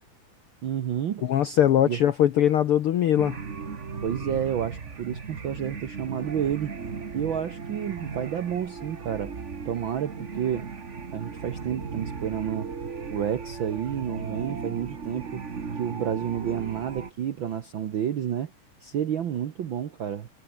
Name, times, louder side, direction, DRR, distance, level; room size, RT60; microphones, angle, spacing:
voice 1, 0.6-1.3 1.8-2.0 4.0-6.7 7.1-9.3 9.6-10.7 11.1-12.7 13.1-15.4 15.7-18.5 18.8-20.3, right 9 dB, 70° right, 1.1 m, -30 dB
voice 2, 1.2-3.4, left 10 dB, 75° left, 1.3 m, -21 dB
sound 1, 3.2-17.1, right 5 dB, 35° right, 1.2 m, -37 dB
omnidirectional pair, 3.8 m